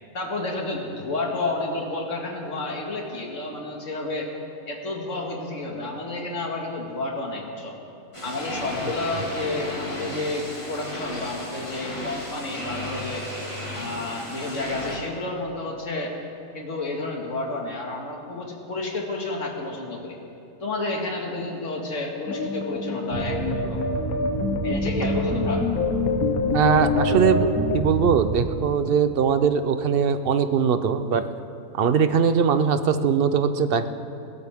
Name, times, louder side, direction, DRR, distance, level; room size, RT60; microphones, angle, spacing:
voice 1, 0.1-4.3 4.7-7.8 8.2-13.4 13.7-16.1 16.5-20.2 20.6-23.8 24.6-25.7, left 2 dB, 55° left, 0 dB, 2.2 m, -30 dB
sound 1, 8.1-15.0, left 1 dB, 20° left, 2.3 m, -34 dB
sound 2, 22.3-27.8, left 4 dB, 75° left, 1.5 m, -26 dB
sound 3, 23.1-28.7, right 5 dB, 85° right, 0.3 m, -30 dB
voice 2, 26.5-27.5 27.7-31.3 31.7-33.9, right 6 dB, 55° right, 10 dB, 0.7 m, -21 dB
20.5 x 16.5 x 3.6 m, 2.8 s
omnidirectional pair, 1.5 m